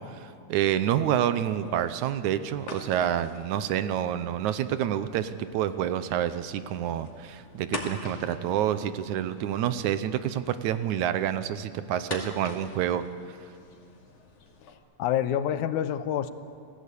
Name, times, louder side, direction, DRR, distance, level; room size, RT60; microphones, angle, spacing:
voice 1, 0.0-13.0, right 10 dB, 80° right, 12 dB, 2.2 m, -28 dB
sound 1, 0.6-14.7, left 3 dB, 55° left, 3.5 m, -45 dB
voice 2, 14.6-16.3, left 10 dB, 80° left, 11 dB, 2.3 m, -28 dB
27.5 x 18.0 x 8.4 m, 2.4 s
omnidirectional pair, 3.5 m